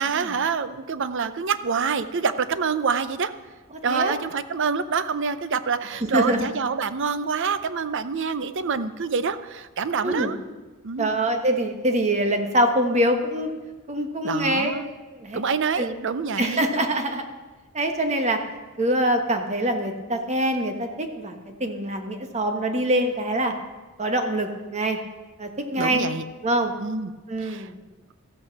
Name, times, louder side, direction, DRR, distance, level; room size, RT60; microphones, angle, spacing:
voice 1, 0.0-3.3 3.8-10.4 10.8-11.2 14.2-14.9 15.3-16.6 25.8-26.2 26.8-27.1 27.4-27.7, right 5 dB, 60° right, 12 dB, 0.6 m, -26 dB
voice 2, 6.1-6.5 10.0-10.3 11.0-13.5 13.9-14.7 15.1-15.4 15.8-15.9 16.4-17.2 17.7-18.4 18.8-23.5 24.0-25.0 25.4-26.1 26.4-26.7 27.3-27.7, right 1 dB, 30° right, 5 dB, 1.3 m, -24 dB
13.5 x 8.5 x 5.9 m, 1.2 s
head